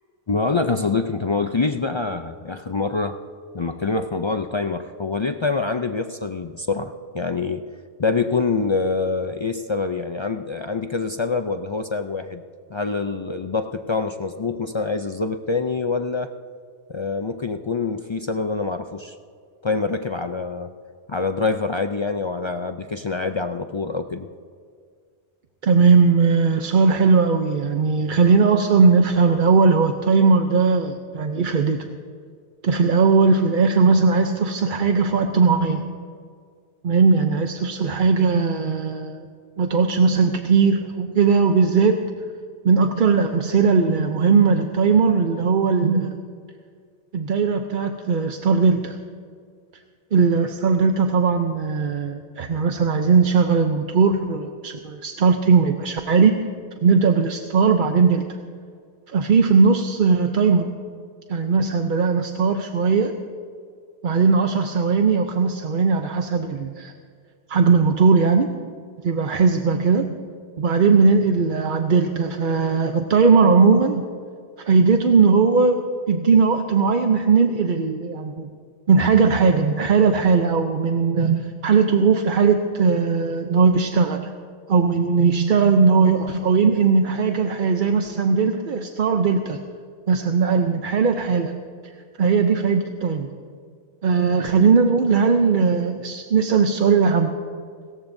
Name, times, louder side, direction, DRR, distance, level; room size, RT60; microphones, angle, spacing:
voice 1, 0.3-3.2 3.5-7.7 8.0-12.4 12.7-16.3 16.9-19.2 19.6-20.7 21.1-24.3, left 4 dB, 45° left, 7 dB, 0.3 m, -25 dB
voice 2, 25.6-31.8 32.6-35.9 36.8-39.3 39.6-42.0 42.6-46.2 47.1-49.0 50.1-56.4 56.8-58.2 59.1-60.7 61.3-63.1 64.0-66.9 67.5-68.5 69.0-70.1 70.6-74.0 74.6-75.8 76.1-78.5 78.9-84.3 84.7-89.6 90.1-91.6 92.2-93.3 94.0-97.3, right 5 dB, 55° right, 5 dB, 0.8 m, -18 dB
30.0 x 14.0 x 2.7 m, 2.1 s
omnidirectional pair, 1.1 m